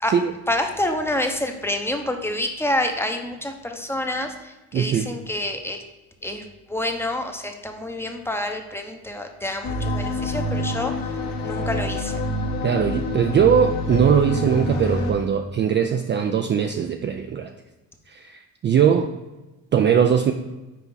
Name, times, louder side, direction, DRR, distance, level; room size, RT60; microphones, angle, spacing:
voice 1, 0.5-5.8 6.2-11.1 11.4-12.1, left 1 dB, 5° left, 5 dB, 0.7 m, -28 dB
voice 2, 4.7-5.1 12.6-17.5 18.1-19.1 19.7-20.3, right 8 dB, 30° right, 5 dB, 0.4 m, -20 dB
sound 1, 9.6-15.1, left 1 dB, 70° left, 1.6 m, -26 dB
5.8 x 4.6 x 4.0 m, 1.1 s
supercardioid pair, 85°, 36 cm